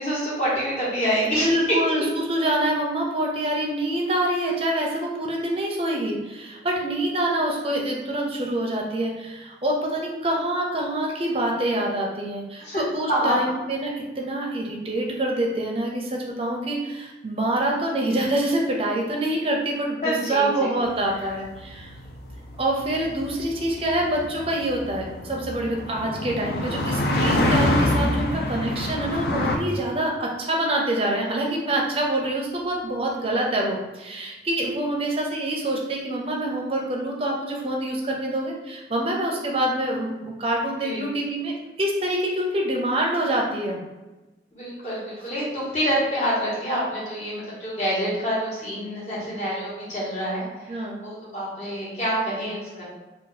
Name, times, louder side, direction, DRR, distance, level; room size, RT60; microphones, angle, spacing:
voice 1, 0.0-1.8 12.6-12.8 13.1-13.3 20.0-20.7 40.8-41.1 44.5-52.8, equal, 40° left, -8 dB, 1.3 m, -27 dB
voice 2, 1.4-21.9 22.6-43.8 50.7-51.0, right 1 dB, 30° right, -1 dB, 0.5 m, -26 dB
sound 1, 21.1-29.6, left 1 dB, 65° left, 0.4 m, -26 dB
2.6 x 2.3 x 3.9 m, 1.1 s
head